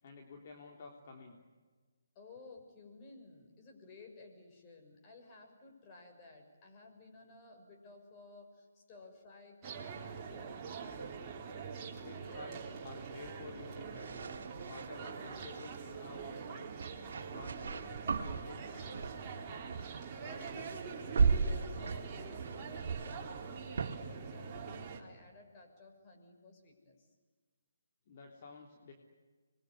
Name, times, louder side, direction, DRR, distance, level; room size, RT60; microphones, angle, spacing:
voice 1, 0.0-1.4 11.9-14.2 14.7-16.7 17.3-19.3 28.1-28.9, left 4 dB, 45° left, 2 dB, 3.4 m, -52 dB
voice 2, 2.1-10.6 19.8-27.1, left 3 dB, 25° left, 2 dB, 6.5 m, -56 dB
sound 1, 9.6-25.0, right 5 dB, 25° right, 3.8 m, -44 dB
sound 2, 13.9-15.8 16.7-19.4 19.7-20.0 20.3-24.0, right 5 dB, 60° right, 2.6 m, -36 dB
26.5 x 22.0 x 9.7 m, 1.4 s
hypercardioid pair, 150°, 0 cm